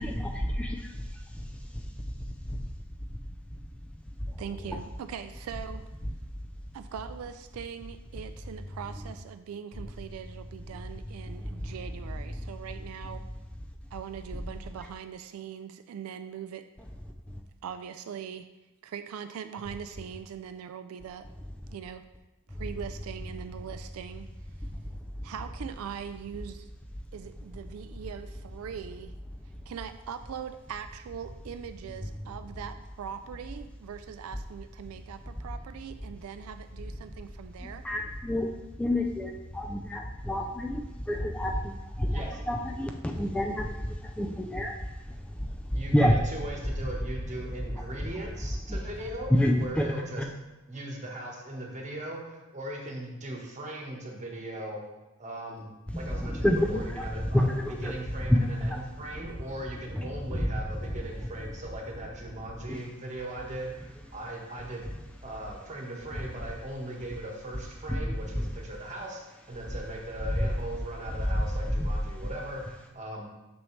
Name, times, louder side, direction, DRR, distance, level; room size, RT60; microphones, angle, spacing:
voice 1, 0.0-2.2 2.5-2.6 3.0-3.7 4.2-4.8 6.0-6.4 8.7-9.1 9.8-9.9 10.6-12.5 13.0-13.3 13.7-13.9 14.3-14.5 14.8-14.9 16.8-17.4 21.4-21.8 22.5-22.8 24.6-25.3 26.9-27.1 27.3-28.0 29.3-29.7 32.0-32.5 35.4-35.6 36.0-36.2 36.9-37.2 37.6-50.3 55.9-63.2 63.7-67.2 67.5-69.0 69.4-69.8 70.2-72.3, equal, 5° left, 0.3 m, -32 dB
voice 2, 4.4-5.9 6.7-13.3 13.9-16.7 17.6-18.5 18.8-21.3 21.7-22.1 22.5-24.3 25.2-26.7 27.1-29.1 29.7-37.9 49.0-49.1, right 8 dB, 80° right, 0.3 m, -41 dB
voice 3, 45.7-49.3 49.6-50.2 50.7-54.8 55.2-56.5 56.7-56.8 57.1-57.5 57.8-58.4 58.7-64.9 65.2-73.3, right 1 dB, 35° right, 1.3 m, -39 dB
6.2 x 6.2 x 3.2 m
head